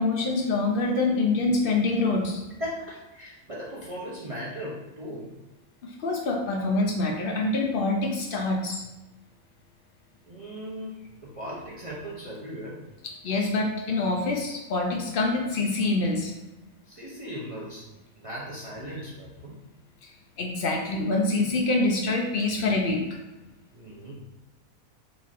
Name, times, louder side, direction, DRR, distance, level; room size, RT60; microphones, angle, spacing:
voice 1, 0.0-2.4 5.8-8.8 13.2-16.3 20.4-23.0, left 2 dB, 80° left, 1 dB, 0.5 m, -25 dB
voice 2, 2.6-5.3 10.3-11.0 11.2-12.8 16.9-17.9 18.2-19.6 23.7-24.1, equal, 50° right, -7 dB, 0.4 m, -37 dB
4.2 x 4.0 x 2.4 m, 1.1 s
omnidirectional pair, 1.6 m